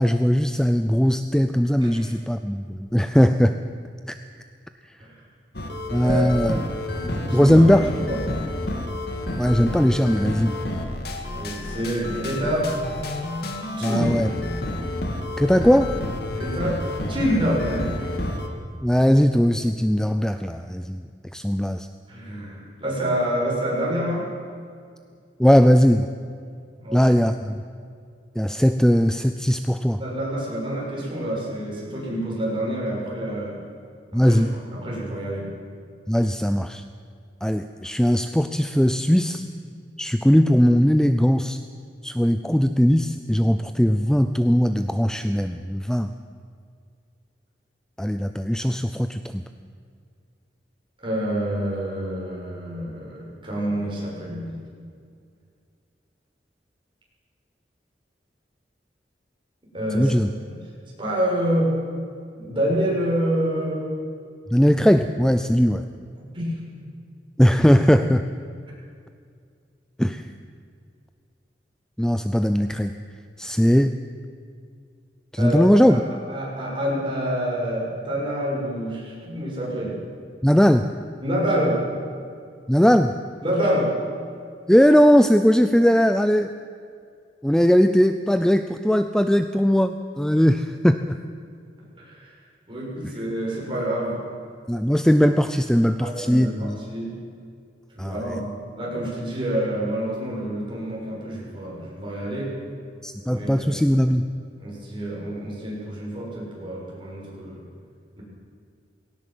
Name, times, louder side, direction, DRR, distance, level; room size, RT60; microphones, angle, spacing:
voice 1, 0.0-3.6 4.1-4.2 5.9-6.6 7.3-7.9 9.4-10.6 13.8-14.3 15.4-16.0 18.8-21.1 21.3-21.9 25.4-26.1 26.9-27.6 28.4-30.0 34.1-34.5 36.1-36.8 37.4-39.5 40.0-41.6 42.0-46.1 48.0-49.4 59.9-60.3 64.5-65.9 67.4-68.3 70.0-70.3 72.0-73.0 73.4-73.9 75.3-76.0 80.4-80.9 82.7-83.1 84.7-86.5 87.4-91.2 94.7-96.8 98.0-98.4 103.0-104.3, equal, 5° left, 9 dB, 0.5 m, -19 dB
sound 1, 5.5-18.5, left 1 dB, 65° left, 2.3 m, -30 dB
voice 2, 6.0-7.7 8.0-8.2 11.3-12.7 13.8-14.1 16.3-16.8 17.1-18.1 22.1-24.3 26.8-27.0 30.0-33.6 34.1-34.4 34.7-35.5 51.0-54.5 59.7-60.2 61.0-61.8 62.3-63.8 66.3-66.5 75.4-75.6 75.9-76.0 76.3-80.0 81.2-81.8 83.4-83.9 92.0-92.3 92.7-94.2 96.0-97.1 98.0-102.5 103.3-103.9 104.6-107.6 108.2-108.3, equal, 30° right, -4 dB, 7.0 m, -27 dB
19.5 x 17.5 x 7.7 m, 2.3 s
head